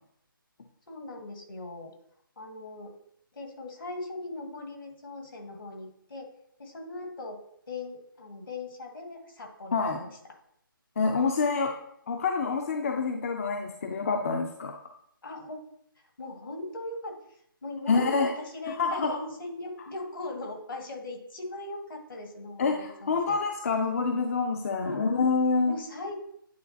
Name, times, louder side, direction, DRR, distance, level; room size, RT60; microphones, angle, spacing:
voice 1, 0.9-1.9 2.4-2.9 3.3-6.3 6.6-7.4 7.7-10.1 15.2-15.6 16.0-23.4 24.8-25.0 25.7-26.2, left 2 dB, 70° left, 2 dB, 1.7 m, -39 dB
voice 2, 11.0-11.8 12.1-14.7 17.9-18.3 18.7-19.1 22.6-25.8, left 4 dB, 40° left, 3 dB, 0.5 m, -27 dB
9.5 x 3.8 x 2.7 m, 0.70 s
figure-of-eight pair, 155°, 12 cm